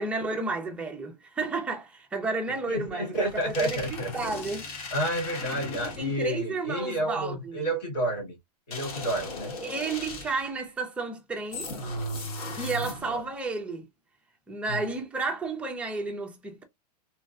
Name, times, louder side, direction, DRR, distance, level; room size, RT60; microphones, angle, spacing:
voice 1, 0.0-4.7 6.0-7.6 9.6-11.7 12.6-13.9 14.5-16.6, right 3 dB, 5° right, 0.4 m, -32 dB
voice 2, 2.7-4.3 4.9-8.3 8.7-9.6 12.8-13.2 14.7-14.8, right 1 dB, 90° left, 2.1 m, -30 dB
sound 1, 3.1-6.3 8.7-10.5 11.5-13.3, left 2 dB, 60° left, 1.4 m, -37 dB
3.2 x 2.5 x 2.2 m
supercardioid pair, 155°, 21 cm